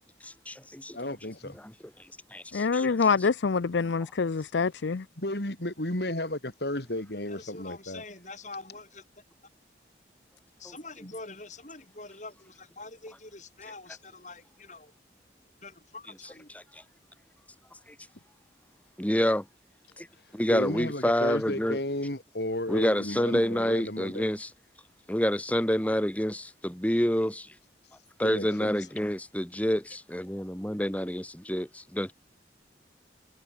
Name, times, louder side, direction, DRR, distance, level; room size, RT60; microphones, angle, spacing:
voice 1, 0.2-1.0 1.6-1.7 2.3-2.9 10.6-10.8 16.2-16.8 19.0-19.4 20.0-20.1 20.3-21.8 22.7-24.5 25.1-27.5 28.2-32.1, equal, 10° left, 1.6 m, -28 dB
voice 2, 0.9-1.6 5.2-8.0 20.5-24.3 28.2-28.7, left 1 dB, 65° left, 3.4 m, -33 dB
voice 3, 2.5-5.0, left 5 dB, 80° left, 0.6 m, -26 dB
voice 4, 7.3-9.0 10.6-14.9 15.6-16.5 28.8-28.9, left 3 dB, 40° left, 5.8 m, -45 dB
head